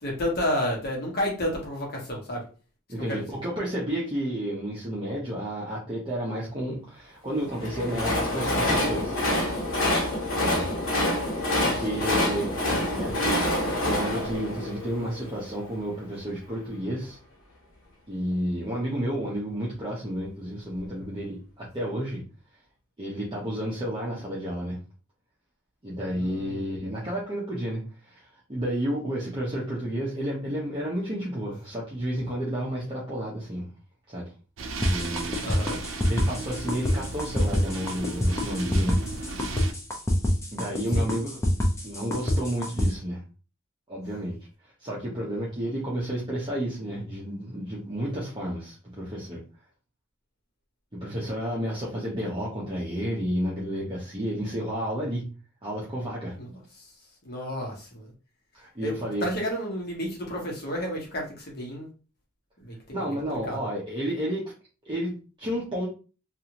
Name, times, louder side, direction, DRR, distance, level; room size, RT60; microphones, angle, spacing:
voice 1, 0.0-2.5 3.1-3.2 12.1-12.3 12.7-12.8 26.1-26.6 35.4-35.8 40.9-41.1 56.4-56.9 57.2-58.1 58.8-58.9 59.2-61.9 62.6-63.1 63.5-63.6, equal, 50° left, -2 dB, 1.0 m, -31 dB
voice 2, 2.9-9.2 10.4-10.7 11.6-12.5 12.9-13.4 13.7-17.2 18.1-22.2 23.0-24.8 25.8-33.7 34.1-34.3 34.8-35.4 36.1-39.0 40.5-41.5 41.8-43.2 43.9-44.4 44.8-49.4 50.9-55.3 55.6-56.4 58.5-59.3 62.9-64.5 64.8-65.9, equal, 25° right, -6 dB, 0.6 m, -31 dB
Train, 7.4-15.6, left 1 dB, 90° left, 1.1 m, -27 dB
sound 1, 34.6-39.7, right 3 dB, 70° right, 0.5 m, -36 dB
sound 2, 34.8-42.9, left 1 dB, 15° left, 0.6 m, -25 dB
2.6 x 2.5 x 2.9 m, 0.36 s
head